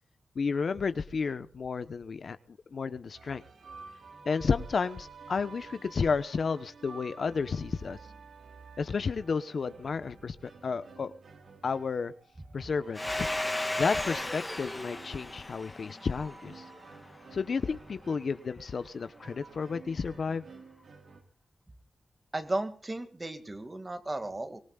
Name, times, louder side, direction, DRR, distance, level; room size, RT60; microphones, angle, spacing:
voice 1, 0.3-2.4 2.7-3.4 4.3-8.0 8.8-10.4 10.6-11.1 11.6-12.1 12.5-13.3 13.8-16.6 17.3-20.4, left 5 dB, 60° left, 12 dB, 0.9 m, -32 dB
sound 1, 3.1-21.2, right 4 dB, 75° right, 3.2 m, -52 dB
Domestic sounds home sounds, 12.9-17.4, left 1 dB, 15° left, 2.3 m, -35 dB
voice 2, 22.3-24.6, right 2 dB, 25° right, 8 dB, 2.1 m, -35 dB
24.5 x 19.5 x 2.4 m, 0.39 s
wide cardioid pair, 110°, 0 cm